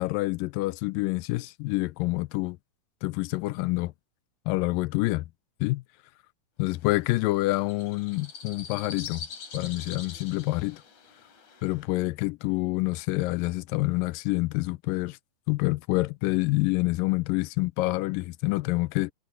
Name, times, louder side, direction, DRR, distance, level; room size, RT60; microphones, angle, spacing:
voice 1, 0.0-2.6 3.0-3.9 4.5-5.3 5.6-5.8 6.6-9.3 9.5-10.8 11.6-15.2 15.5-19.1, left 21 dB, 90° left, 2.3 m, -27 dB
sound 1, 6.8-11.9, left 6 dB, 60° left, 4.4 m, -44 dB
omnidirectional pair, 3.9 m